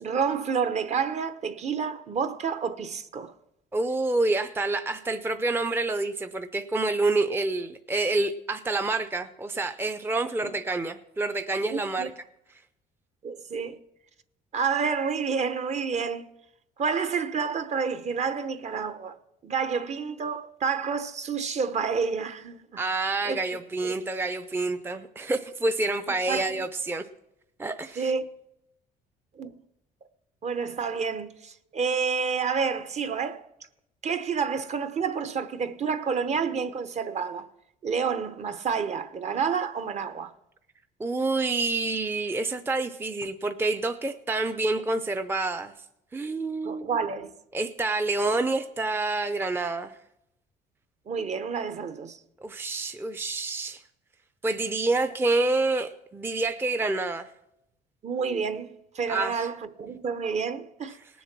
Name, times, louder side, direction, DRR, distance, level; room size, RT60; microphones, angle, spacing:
voice 1, 0.0-3.3 10.4-10.5 11.7-12.1 13.2-13.8 14.5-16.3 16.8-19.1 19.4-22.8 23.2-23.4 23.8-24.0 26.1-26.6 28.0-28.3 29.4-29.6 30.4-33.4 34.0-37.5 37.8-40.3 46.6-47.3 51.1-52.2 58.0-61.0, right 6 dB, 40° right, 1.0 m, -29 dB
voice 2, 3.7-12.1 22.8-27.0 27.6-28.1 41.0-45.7 46.1-46.9 47.5-50.0 52.4-53.8 54.4-57.3 59.1-59.5, right 2 dB, 15° right, 0.6 m, -28 dB
19.0 x 7.1 x 6.0 m
cardioid pair, 110°, 17 cm